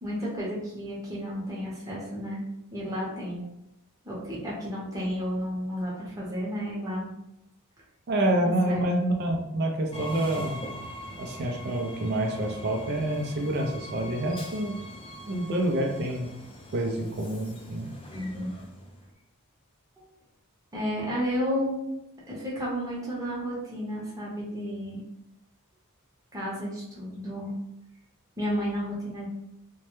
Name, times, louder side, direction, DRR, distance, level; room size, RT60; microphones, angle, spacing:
voice 1, 0.0-2.4 2.7-3.4 4.0-7.1 8.4-8.8 18.1-18.5 20.0-20.1 20.7-21.8 22.3-25.0 26.3-27.5 28.4-29.3, equal, 15° right, -6 dB, 0.7 m, -32 dB
voice 2, 8.1-10.6 11.2-14.8 15.3-16.3 16.7-17.9, right 1 dB, 50° right, 1 dB, 0.4 m, -27 dB
Train, 9.9-19.1, equal, 25° left, 0.3 m, -42 dB
2.2 x 2.0 x 2.9 m, 0.85 s
head